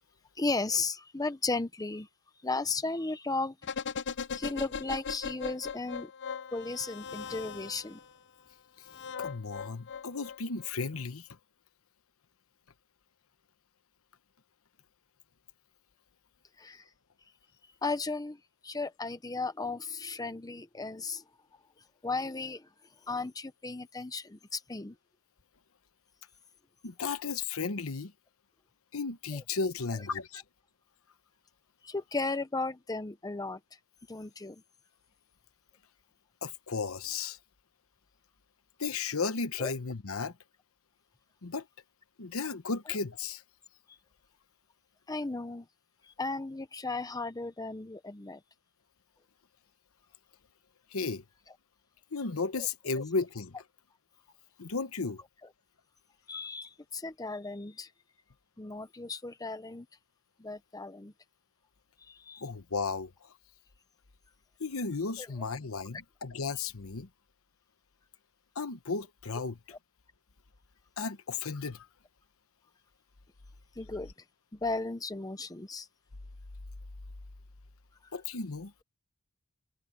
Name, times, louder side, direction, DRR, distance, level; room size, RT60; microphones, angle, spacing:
voice 1, 0.4-2.1 2.4-3.5 4.3-6.1 6.5-8.0 16.6-16.8 17.8-18.4 18.6-21.2 22.0-22.7 23.1-24.9 29.3-29.4 31.8-33.6 34.1-34.6 39.6-39.7 45.1-45.7 46.1-48.4 52.6-52.7 56.3-57.9 58.6-59.9 60.4-61.1 62.0-62.4 65.2-65.3 73.8-74.1 74.5-75.9, left 3 dB, 15° left, 0.8 m, -35 dB
sound 1, 3.6-8.0 8.9-10.7 11.0-11.1, left 6 dB, 55° left, 0.7 m, -39 dB
voice 2, 9.2-11.3 26.8-28.1 28.9-30.4 36.4-37.4 38.8-40.3 41.4-41.6 42.2-43.4 50.9-51.2 52.1-53.6 54.6-55.2 62.4-63.1 64.6-67.1 68.6-69.6 71.0-71.9 78.1-78.8, left 4 dB, 70° left, 1.0 m, -34 dB
head